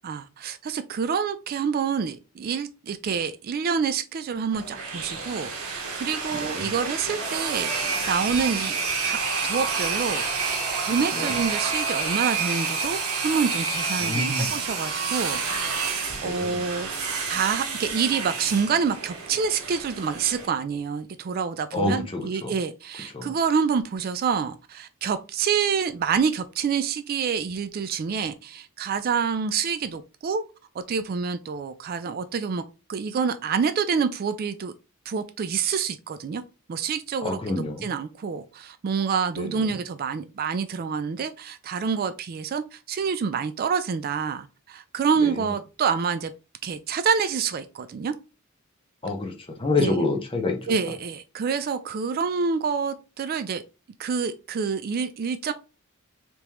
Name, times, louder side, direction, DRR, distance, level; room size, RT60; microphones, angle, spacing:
voice 1, 0.0-8.8 9.0-10.2 10.8-15.4 15.8-16.9 17.3-30.4 30.9-32.6 32.9-34.7 35.1-36.4 36.7-46.3 46.6-48.1 49.7-50.0 50.7-53.6 54.0-55.5, right 6 dB, 45° right, 0.3 m, -27 dB
sound 1, 4.5-20.5, right 5 dB, 85° right, 1.0 m, -29 dB
voice 2, 6.3-6.7 11.1-11.3 14.0-14.5 16.2-16.6 21.7-22.5 23.1-23.3 37.2-37.9 39.4-39.6 45.2-45.3 49.0-50.7, left 2 dB, 25° left, 0.8 m, -27 dB
sound 2, 9.1-14.5, left 1 dB, 40° left, 1.6 m, -39 dB
3.5 x 3.0 x 2.9 m
head